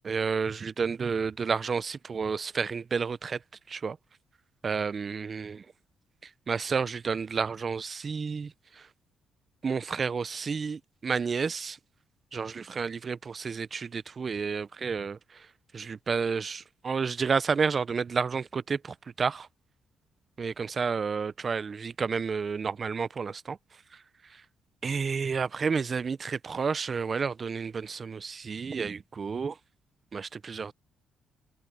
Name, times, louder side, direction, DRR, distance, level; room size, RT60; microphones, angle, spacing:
voice 1, 0.0-3.4 3.7-4.0 4.6-5.6 6.5-8.5 9.6-11.8 12.3-15.2 15.7-19.5 20.4-23.6 24.8-29.5 30.1-30.7, right 5 dB, 40° right, 0.5 m, -30 dB
cardioid pair, 90°, 0 cm